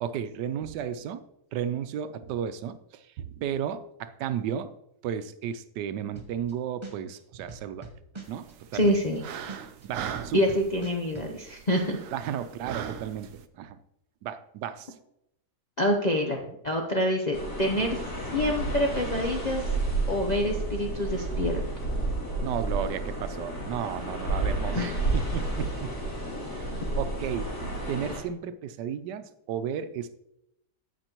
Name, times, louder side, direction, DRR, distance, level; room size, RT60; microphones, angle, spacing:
voice 1, 0.0-1.2 1.5-4.7 5.0-7.9 8.3-9.0 9.8-10.4 12.1-13.8 14.2-14.9 22.4-25.9 26.5-26.7 27.0-30.2, right 9 dB, 85° right, 11 dB, 1.2 m, -34 dB
sound 1, 6.2-6.5 6.8-9.2 9.5-11.3, right 4 dB, 25° right, 0.7 m, -42 dB
sound 2, 8.2-13.5, right 8 dB, 65° right, 0.8 m, -40 dB
voice 2, 8.7-9.2 10.3-12.0 15.8-18.0 18.3-19.6 20.1-21.6 24.7-24.9, left 1 dB, 45° left, 1 dB, 0.5 m, -26 dB
sound 3, 17.3-28.2, right 2 dB, 75° left, 2.8 m, -31 dB
15.5 x 5.3 x 3.0 m, 0.80 s
omnidirectional pair, 1.8 m